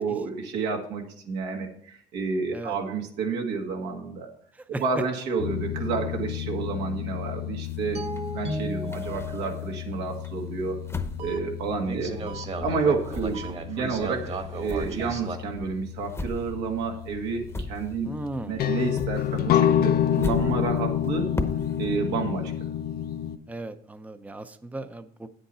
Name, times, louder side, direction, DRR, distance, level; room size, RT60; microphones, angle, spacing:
voice 1, 0.0-4.3 4.8-8.0 8.3-10.8 11.2-12.2 12.6-18.1 18.4-21.3 21.8-22.7, right 5 dB, 90° right, 2 dB, 2.0 m, -30 dB
voice 2, 4.5-5.0 12.2-12.3 18.0-18.7 23.5-25.3, right 2 dB, 10° right, 10 dB, 0.6 m, -36 dB
sound 1, 5.4-23.4, left 10 dB, 65° left, 0.7 m, -30 dB
sound 2, 7.6-9.8 10.2-12.4 12.6-18.3 18.6-22.0, left 2 dB, 15° left, 0.9 m, -37 dB
sound 3, 7.9-9.9 11.2-11.4 11.8-15.4, right 2 dB, 40° right, 1.4 m, -35 dB
9.1 x 8.0 x 4.2 m, 0.66 s
cardioid pair, 110°, 17 cm